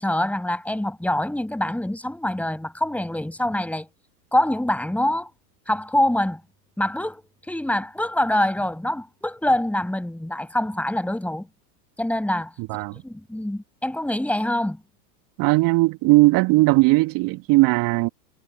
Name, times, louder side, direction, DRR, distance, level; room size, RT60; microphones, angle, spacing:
voice 1, 0.0-3.9 4.3-5.3 5.7-6.4 6.8-11.5 12.0-12.5 12.9-14.8, left 1 dB, 5° left, 7.3 m, -25 dB
voice 2, 12.6-13.0 15.4-18.1, right 23 dB, 45° right, 3.4 m, -18 dB
hypercardioid pair, 95°, 49 cm